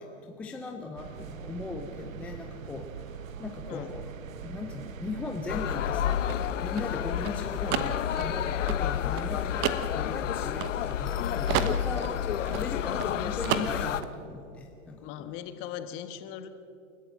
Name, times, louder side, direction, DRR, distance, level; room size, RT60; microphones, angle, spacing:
voice 1, 0.0-2.8 3.4-4.1 4.4-6.2 6.6-12.1 12.5-15.3, left 3 dB, 5° left, 2 dB, 0.4 m, -38 dB
sound 1, 1.0-6.2, right 7 dB, 80° right, 1.3 m, -42 dB
sound 2, 5.5-14.0, left 10 dB, 65° left, 1.1 m, -30 dB
sound 3, 5.9-11.2 11.5-13.1 13.4-14.1, right 10 dB, 30° right, 1.2 m, -32 dB
voice 2, 11.2-11.5 15.0-16.5, left 10 dB, 30° left, 9 dB, 1.5 m, -39 dB
29.0 x 13.5 x 7.6 m, 2.7 s
hypercardioid pair, 140°, 39 cm